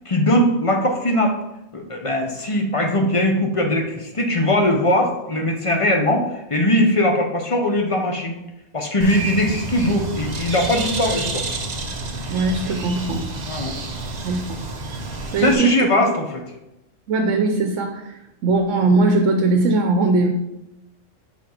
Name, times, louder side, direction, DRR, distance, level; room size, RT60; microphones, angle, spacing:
voice 1, 0.0-1.4 1.7-8.4 8.7-11.4 13.5-13.7 15.4-16.4, left 1 dB, 30° left, 2 dB, 0.7 m, -20 dB
Bird, 9.0-15.6, right 3 dB, 40° right, 0.7 m, -29 dB
voice 2, 12.3-13.3 14.2-14.4 15.3-15.8 17.1-20.3, right 3 dB, 70° right, 4 dB, 1.0 m, -20 dB
5.9 x 4.5 x 4.4 m, 0.90 s
omnidirectional pair, 1.3 m